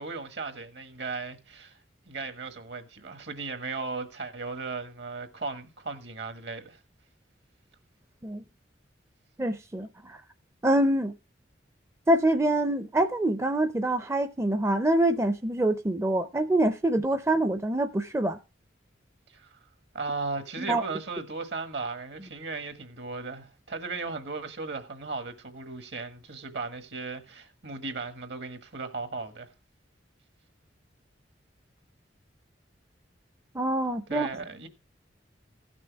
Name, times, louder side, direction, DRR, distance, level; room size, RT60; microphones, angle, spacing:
voice 1, 0.0-1.8 2.1-6.8 19.3-19.5 19.9-29.5 34.1-34.7, right 3 dB, 65° right, 1.5 m, -36 dB
voice 2, 9.4-10.2 10.6-11.1 12.1-18.4 20.6-20.8 33.5-34.3, right 1 dB, 15° right, 0.5 m, -25 dB
15.5 x 6.2 x 4.6 m
head